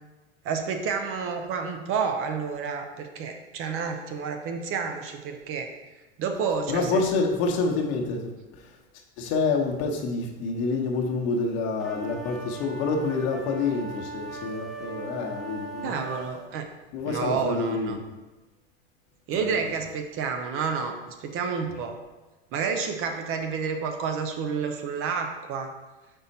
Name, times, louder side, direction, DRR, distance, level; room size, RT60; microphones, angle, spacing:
voice 1, 0.4-5.7 6.2-7.1 15.8-16.7 17.0-18.0 19.3-22.0 22.5-25.7, right 5 dB, 40° right, 5 dB, 0.8 m, -30 dB
voice 2, 6.7-8.3 9.2-15.9 16.9-18.0 19.3-19.7, left 4 dB, 50° left, 1 dB, 1.1 m, -27 dB
sound 1, 11.8-16.3, right 3 dB, ahead, 1.0 m, -38 dB
5.6 x 4.2 x 4.1 m, 1.1 s
supercardioid pair, 115°, 32 cm